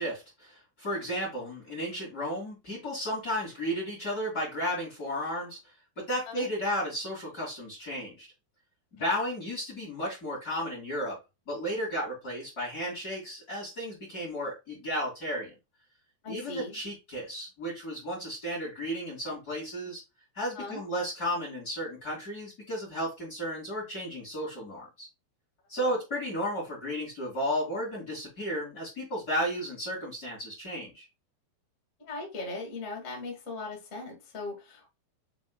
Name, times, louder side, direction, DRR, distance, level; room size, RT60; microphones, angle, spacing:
voice 1, 0.0-5.6 6.0-8.3 8.9-11.2 11.5-15.5 16.3-20.0 20.3-25.1 25.7-31.1, equal, 30° left, -4 dB, 2.0 m, -33 dB
voice 2, 16.2-16.8 20.5-20.8 25.8-25.9 32.0-34.9, left 3 dB, 65° left, -1 dB, 0.7 m, -39 dB
6.4 x 3.5 x 2.2 m, 0.24 s
omnidirectional pair, 5.0 m